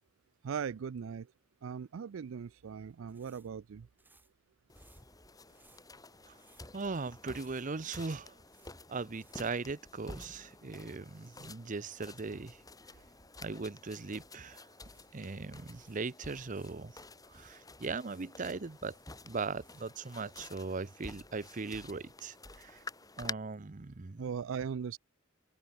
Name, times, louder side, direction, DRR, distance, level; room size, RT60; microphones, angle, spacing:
voice 1, 0.4-1.3 1.6-3.9 24.2-25.0, right 6 dB, 80° right, 0.4 m, -39 dB
sound 1, 2.9-10.3 10.6-10.7 14.5-16.8 17.3-20.1, right 2 dB, 10° right, 5.0 m, -68 dB
sound 2, 4.7-23.3, left 3 dB, 20° left, 3.9 m, -50 dB
voice 2, 6.7-8.3 8.9-12.6 13.4-14.6 15.1-16.9 17.3-18.9 19.2-22.8 23.2-24.3, right 4 dB, 40° right, 0.7 m, -39 dB
head